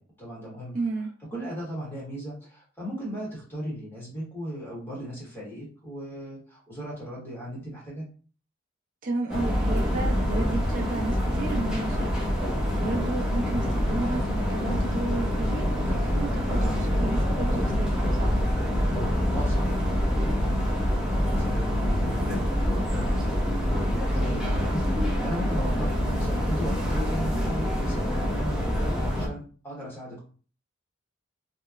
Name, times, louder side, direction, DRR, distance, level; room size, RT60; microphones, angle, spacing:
voice 1, 0.0-0.7 1.2-8.1 16.0-16.1 19.3-19.8 20.1-20.8 21.1-30.2, equal, 10° left, -6 dB, 1.1 m, -37 dB
voice 2, 0.7-1.1 9.0-18.4, right 3 dB, 45° right, -1 dB, 0.5 m, -33 dB
sound 1, 9.3-29.3, equal, 5° right, 0.6 m, -26 dB
2.9 x 2.0 x 2.3 m, 0.40 s
head